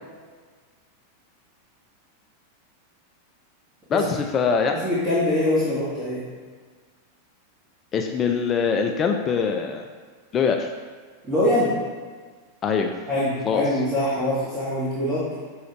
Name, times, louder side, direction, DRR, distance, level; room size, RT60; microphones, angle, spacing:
voice 1, 3.9-4.7 7.9-9.8 10.3-10.7 12.6-12.9 13.4-13.6, left 6 dB, 25° left, 4 dB, 0.3 m, -23 dB
voice 2, 4.7-6.2 11.2-11.7 13.1-15.3, left 1 dB, 20° right, -10 dB, 1.2 m, -23 dB
5.9 x 2.3 x 3.1 m, 1.6 s
figure-of-eight pair, 90°, 0 cm